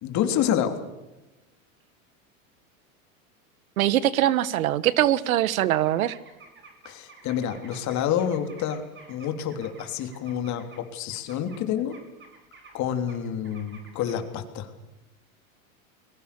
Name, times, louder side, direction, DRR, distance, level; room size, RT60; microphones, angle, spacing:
voice 1, 0.0-0.8 6.9-8.8 9.1-12.0 12.7-14.7, left 9 dB, 40° left, 7 dB, 3.4 m, -28 dB
voice 2, 3.8-6.2, right 13 dB, 85° right, 18 dB, 1.4 m, -22 dB
sound 1, 5.4-10.8 11.1-14.2, right 4 dB, 25° right, 5.4 m, -51 dB
30.0 x 22.0 x 6.9 m, 1.0 s
supercardioid pair, 130°, 41 cm